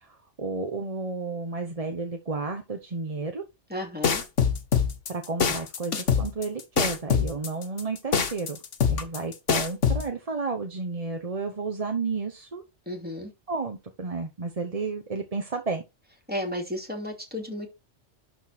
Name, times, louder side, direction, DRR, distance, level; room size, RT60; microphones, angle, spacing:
voice 1, 0.0-3.4 5.1-8.6 8.9-12.6 13.5-15.8, right 4 dB, 35° right, 1.0 m, -32 dB
voice 2, 3.7-4.2 12.9-13.3 16.3-17.7, left 1 dB, 10° right, 2.8 m, -33 dB
sound 1, 4.0-10.0, left 6 dB, 80° left, 1.6 m, -23 dB
12.0 x 4.2 x 4.4 m
omnidirectional pair, 1.2 m